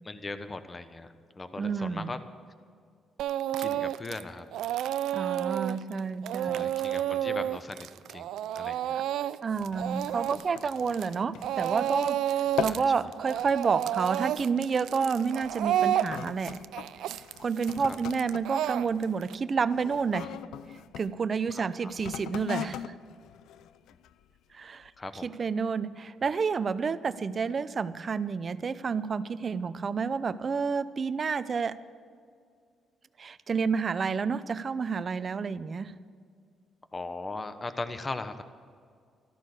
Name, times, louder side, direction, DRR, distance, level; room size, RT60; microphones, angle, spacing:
voice 1, 0.0-2.2 3.6-4.5 6.5-8.3 8.5-9.0 12.6-12.8 17.9-18.0 21.5-21.9 25.0-25.3 36.9-38.4, left 3 dB, 25° left, 10 dB, 1.1 m, -38 dB
voice 2, 1.6-2.1 5.1-6.7 9.4-16.7 17.4-20.3 21.0-22.9 24.5-24.9 25.2-31.8 33.2-36.0, right 5 dB, 40° right, 15 dB, 0.6 m, -30 dB
Speech / Crying sobbing, 3.2-4.2 4.5-11.2 11.4-12.8 13.1-19.3, right 11 dB, 80° right, 0.4 m, -30 dB
sound 1, 9.5-12.1 12.4-13.0 13.3-13.6 14.3-14.6 15.3-21.1 21.9-24.2 24.8-24.9, left 10 dB, 80° left, 0.4 m, -40 dB
13.5 x 13.0 x 6.8 m, 2.1 s
cardioid pair, 90°, 0 cm